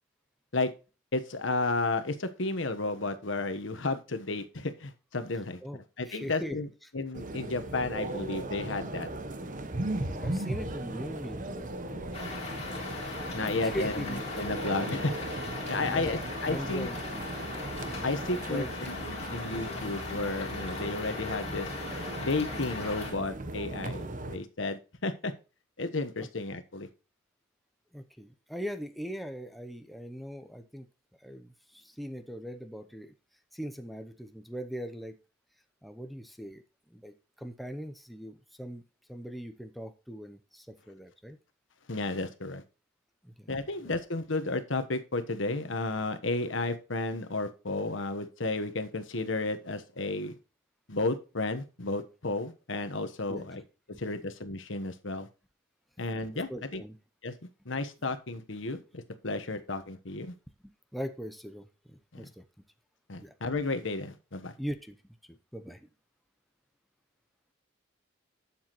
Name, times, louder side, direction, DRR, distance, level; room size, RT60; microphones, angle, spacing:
voice 1, 1.1-5.6 6.0-6.7 6.9-9.1 13.3-15.2 15.7-16.9 17.6-17.8 18.0-21.7 22.2-25.3 25.8-26.9 41.9-42.6 43.5-50.3 50.9-53.6 54.0-55.3 56.0-56.8 57.2-57.3 57.6-60.3 62.1-62.2 63.1-64.5, left 2 dB, 75° left, 9 dB, 1.2 m, -32 dB
voice 2, 6.1-6.9 10.1-12.7 13.6-14.2 14.8-15.1 15.8-17.3 18.3-18.7 27.9-30.9 31.2-33.1 33.5-35.2 35.8-38.8 39.1-41.4 43.2-43.9 53.3-53.6 54.1-54.2 56.3-57.0 60.9-62.4 63.2-63.3 64.6-65.9, equal, ahead, 7 dB, 0.7 m, -41 dB
sound 1, 7.1-24.4, right 1 dB, 40° right, 1.0 m, -37 dB
sound 2, 12.1-23.1, left 4 dB, 35° left, 3.7 m, -40 dB
11.5 x 7.2 x 3.1 m, 0.32 s
head